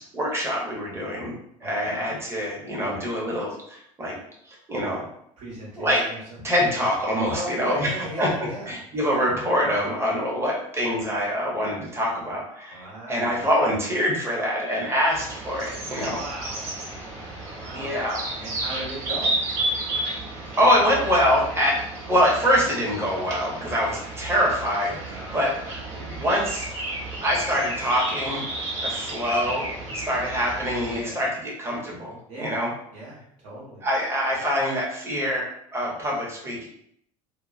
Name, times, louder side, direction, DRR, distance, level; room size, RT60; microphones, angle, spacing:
voice 1, 0.1-4.2 4.5-5.0 5.8-6.0 6.4-8.3 8.7-16.2 17.7-18.2 20.6-26.7 27.2-28.4 28.8-29.7 29.9-32.7 33.8-36.7, equal, 15° right, -3 dB, 0.8 m, -25 dB
voice 2, 1.6-2.1 5.4-6.8 7.3-8.7 12.7-13.3 15.9-17.1 17.6-18.0 18.4-19.3 25.0-25.5 30.9-31.2 32.3-32.6 32.9-33.8, right 1 dB, 65° right, -6 dB, 1.2 m, -38 dB
sound 1, 15.1-31.0, right 2 dB, 40° right, 1.2 m, -32 dB
2.8 x 2.0 x 2.4 m, 0.70 s
figure-of-eight pair, 65°, 18 cm